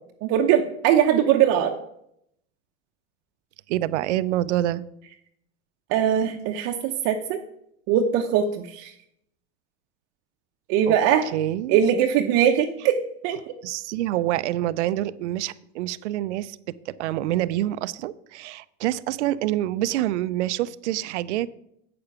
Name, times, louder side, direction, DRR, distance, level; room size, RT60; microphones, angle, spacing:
voice 1, 0.2-1.8 5.9-7.4 7.9-8.9 10.7-11.3 11.7-13.0 13.2-13.4, right 9 dB, 45° right, 3 dB, 0.8 m, -21 dB
voice 2, 3.7-4.8 10.9-11.0 11.3-11.8 13.6-16.6 16.9-21.5, right 14 dB, 80° right, 16 dB, 0.6 m, -26 dB
8.5 x 6.8 x 5.8 m, 0.76 s
supercardioid pair, 125°, 35 cm